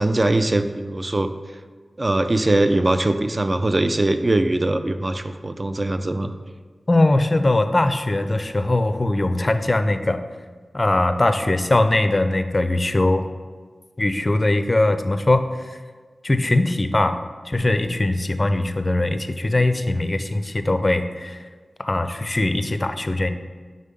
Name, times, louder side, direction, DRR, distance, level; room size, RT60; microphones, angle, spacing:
voice 1, 0.0-1.3 2.0-6.3, right 2 dB, 35° right, 9 dB, 0.4 m, -21 dB
voice 2, 6.9-10.2 10.7-13.2 14.0-15.5 16.2-21.4 21.8-23.3, left 2 dB, 35° left, 9 dB, 0.4 m, -21 dB
5.5 x 3.7 x 5.2 m, 1.5 s
wide cardioid pair, 60°, 0 cm